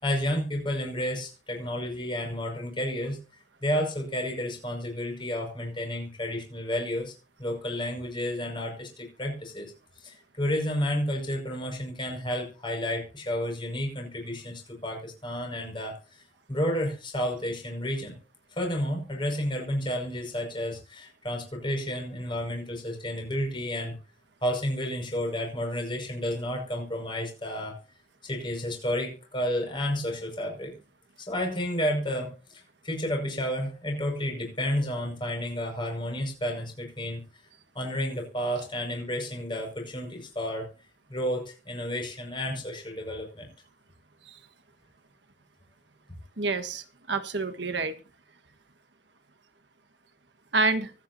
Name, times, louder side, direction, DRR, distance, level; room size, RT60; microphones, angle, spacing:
voice 1, 0.0-3.2 3.6-7.1 7.4-9.7 10.0-18.2 18.6-24.0 24.4-27.8 28.2-30.7 31.3-37.2 37.7-40.7 41.1-43.5, equal, 25° left, 2 dB, 5.6 m, -31 dB
voice 2, 46.4-47.9 50.5-50.9, right 3 dB, 65° right, 9 dB, 1.5 m, -28 dB
24.5 x 9.1 x 2.7 m, 0.32 s
head